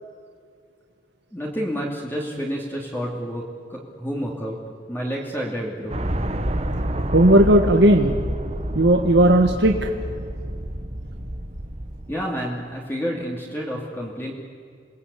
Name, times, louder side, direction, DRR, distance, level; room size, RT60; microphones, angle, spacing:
voice 1, 1.3-4.6 4.9-6.0 12.1-14.3, equal, 10° left, -2 dB, 2.6 m, -29 dB
sound 1, 5.9-12.1, right 1 dB, 35° right, 1.5 m, -28 dB
voice 2, 7.1-8.1 8.7-9.8, right 1 dB, 75° right, 3 dB, 1.4 m, -15 dB
27.5 x 20.0 x 8.4 m, 2.2 s
head